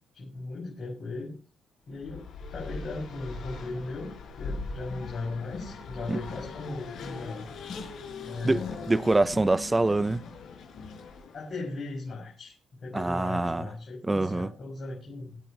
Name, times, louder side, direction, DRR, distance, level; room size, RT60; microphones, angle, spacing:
voice 1, 0.1-1.3 1.9-7.5 8.2-9.1 11.3-15.4, left 3 dB, 45° left, 5.9 m, -37 dB
Race car auto racing, 1.9-11.6, left 4 dB, 65° left, 5.7 m, -40 dB
voice 2, 8.4-10.2 12.9-13.7 14.1-14.5, right 2 dB, 15° right, 0.7 m, -25 dB
24.0 x 8.4 x 3.0 m
cardioid pair, 90°, 0 cm